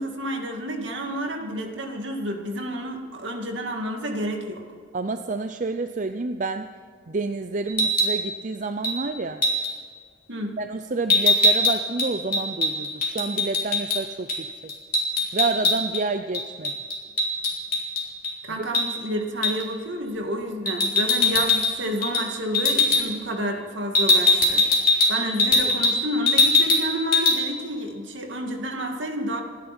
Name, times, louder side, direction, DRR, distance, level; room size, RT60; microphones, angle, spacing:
voice 1, 0.0-4.6 10.3-10.5 18.4-24.7 25.1-29.4, equal, 70° right, 3 dB, 2.3 m, -30 dB
voice 2, 4.9-6.7 7.1-9.4 10.6-14.5 15.3-16.7 18.5-18.6, right 3 dB, 40° right, 8 dB, 0.5 m, -29 dB
sound 1, 7.7-8.2 8.8-9.0 9.4-9.7 11.1-14.0 14.3-14.4 14.7-16.0 16.3-18.3 18.7-18.9 19.4-19.7 20.7-21.7 22.0-22.3 22.5-23.0 23.9-26.0 26.3-26.9 27.1-27.4, left 2 dB, 45° left, 3.5 m, -21 dB
27.5 x 11.0 x 4.4 m, 2.1 s
head